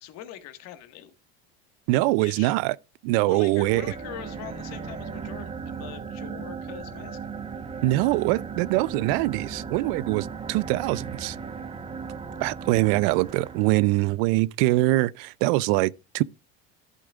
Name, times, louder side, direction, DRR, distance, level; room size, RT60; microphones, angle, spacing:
voice 1, 0.0-1.1 2.2-2.5 3.2-7.2, left 12 dB, 55° left, 1.6 m, -42 dB
voice 2, 1.9-2.8 3.0-3.8 7.8-11.4 12.4-16.2, right 19 dB, 70° right, 0.5 m, -23 dB
sound 1, 3.6-14.1, right 5 dB, 20° right, 1.1 m, -37 dB
13.5 x 8.4 x 2.4 m
supercardioid pair, 120°, 30 cm